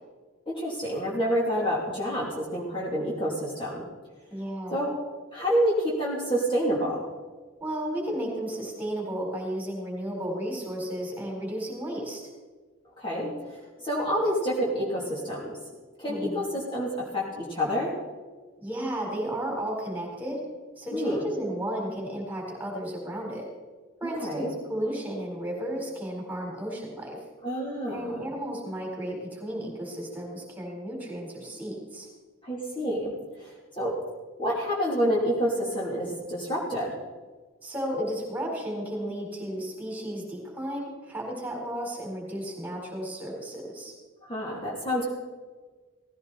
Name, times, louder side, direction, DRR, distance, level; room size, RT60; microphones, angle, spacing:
voice 1, 0.5-3.9 4.7-4.9 5.3-7.1 13.0-15.6 16.0-18.0 20.9-21.2 24.0-24.5 27.4-28.2 32.4-34.0 34.4-37.0 44.2-45.1, equal, 25° left, -5 dB, 2.9 m, -28 dB
voice 2, 4.3-4.8 7.6-12.2 16.1-16.4 18.6-20.4 20.8-23.5 24.0-27.2 27.9-32.1 37.6-43.9, right 1 dB, 10° right, -1 dB, 4.3 m, -33 dB
17.5 x 16.0 x 4.2 m, 1.4 s
head